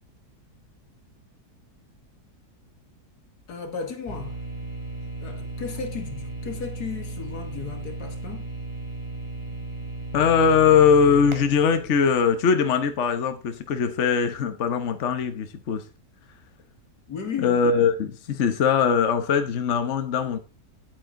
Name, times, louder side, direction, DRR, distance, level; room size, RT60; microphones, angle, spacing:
voice 1, 3.5-4.4 5.2-8.5 17.1-17.9, left 6 dB, 80° left, 2.3 m, -35 dB
sound 1, 4.1-13.0, right 2 dB, 20° right, 1.9 m, -36 dB
voice 2, 10.1-15.8 17.4-20.4, left 6 dB, 50° left, 1.2 m, -21 dB
9.9 x 9.0 x 3.8 m
omnidirectional pair, 1.7 m